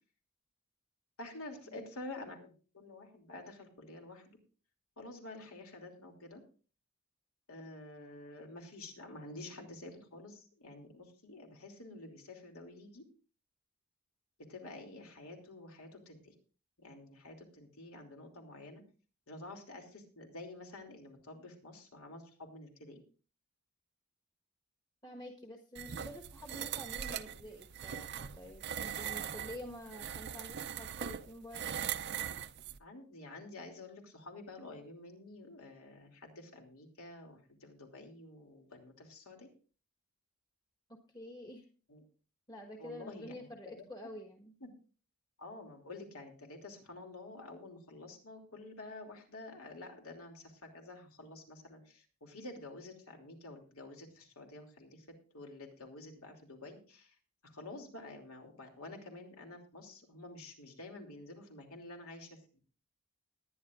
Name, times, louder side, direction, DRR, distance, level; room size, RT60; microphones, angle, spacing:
voice 1, 1.2-4.4 5.0-6.4 7.5-13.0 14.5-16.3 16.8-18.8 19.3-23.0 32.8-39.5 41.9-42.0 42.8-43.4 43.7-43.8 44.6-44.7 45.4-55.0 55.3-57.1 57.4-62.4, left 2 dB, 75° left, 2 dB, 3.0 m, -49 dB
voice 2, 25.0-31.7 40.9-41.6 42.5-44.5, left 1 dB, 20° left, 1 dB, 1.4 m, -48 dB
sound 1, 25.8-32.8, right 9 dB, 50° right, 0.5 m, -40 dB
20.5 x 10.0 x 2.5 m, 0.38 s
head